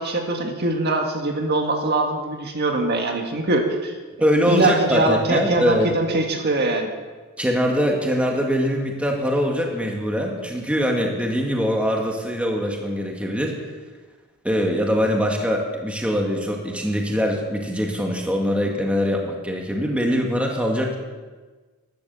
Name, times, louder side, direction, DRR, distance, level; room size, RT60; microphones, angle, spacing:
voice 1, 0.0-3.9 4.5-6.9, right 2 dB, 45° right, 3 dB, 1.8 m, -22 dB
voice 2, 4.2-5.9 7.4-13.6 14.4-21.0, equal, 5° right, 0 dB, 1.9 m, -22 dB
15.5 x 12.0 x 7.0 m, 1.3 s
head